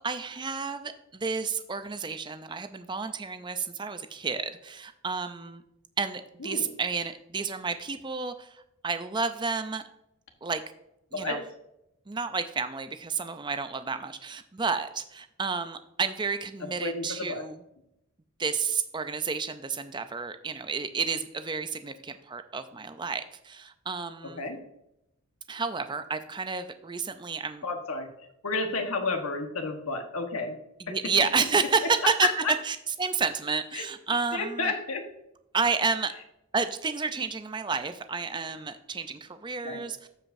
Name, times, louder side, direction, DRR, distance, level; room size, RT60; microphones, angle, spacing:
voice 1, 0.0-5.6 6.0-9.8 10.4-10.6 11.1-11.4 12.1-17.6 18.4-24.4 25.5-27.6 30.8-32.3 32.6-34.7 35.5-36.1 36.5-40.1, right 5 dB, 20° right, 9 dB, 0.4 m, -30 dB
voice 2, 16.6-17.4 24.2-24.6 27.6-28.1 28.4-30.6 30.9-31.0 32.2-32.5 33.7-33.8 34.3-35.0 39.6-39.8, left 3 dB, 75° left, 4 dB, 1.3 m, -31 dB
14.5 x 5.0 x 2.6 m, 0.85 s
head